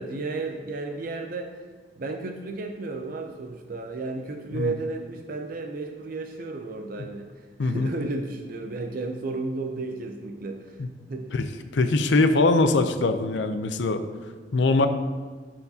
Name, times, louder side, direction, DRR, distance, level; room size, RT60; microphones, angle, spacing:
voice 1, 0.0-1.5 2.0-7.3 7.6-10.8 11.1-11.3, right 3 dB, 50° right, 4 dB, 0.5 m, -33 dB
voice 2, 7.6-7.9 10.8-10.9 11.3-11.5 11.7-14.0 14.5-14.9, left 3 dB, 80° left, 8 dB, 0.5 m, -22 dB
12.0 x 4.5 x 2.8 m, 1.4 s
head